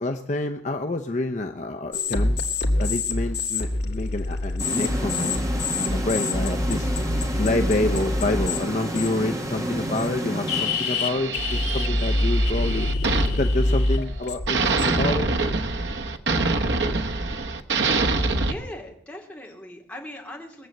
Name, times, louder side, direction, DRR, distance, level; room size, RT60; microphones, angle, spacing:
voice 1, 0.0-2.4 2.8-5.5 5.8-6.9 7.3-12.9 13.4-15.3, left 2 dB, 40° left, 4 dB, 0.7 m, -28 dB
sound 1, 1.9-8.6 9.0-9.3 10.0-10.1 10.5-15.1, left 2 dB, 65° left, 2.1 m, -25 dB
sound 2, 4.6-11.4, equal, 20° right, 1.4 m, -30 dB
sound 3, 10.5-14.1 14.5-18.5, right 3 dB, 75° right, 1.1 m, -25 dB
voice 2, 18.4-20.7, left 1 dB, 5° left, -1 dB, 2.6 m, -39 dB
21.0 x 7.7 x 7.8 m, 0.67 s
head